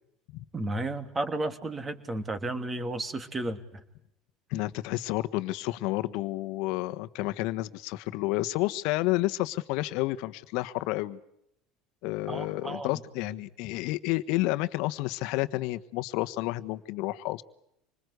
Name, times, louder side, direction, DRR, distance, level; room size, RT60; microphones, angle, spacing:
voice 1, 0.5-3.8 12.3-13.0, right 2 dB, 25° right, 3.0 m, -33 dB
voice 2, 4.5-11.2 12.0-17.4, left 18 dB, 70° left, 1.3 m, -30 dB
26.5 x 20.5 x 8.1 m
supercardioid pair, 105°, 0 cm